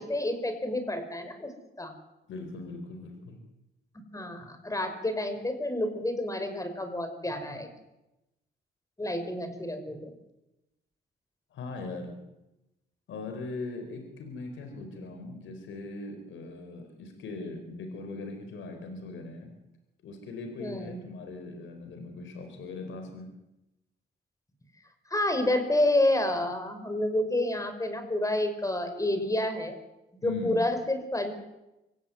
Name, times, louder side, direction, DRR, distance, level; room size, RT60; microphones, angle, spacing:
voice 1, 0.0-1.5 1.8-1.9 4.1-7.7 9.0-10.1 20.6-21.0 25.1-29.8 30.2-31.3, left 1 dB, 15° left, 8 dB, 5.4 m, -29 dB
voice 2, 2.3-3.4 11.5-12.1 13.1-19.5 20.0-23.3 30.2-30.6, left 3 dB, 75° left, 5 dB, 4.6 m, -40 dB
25.0 x 16.0 x 9.6 m, 0.94 s
cardioid pair, 90°, 20 cm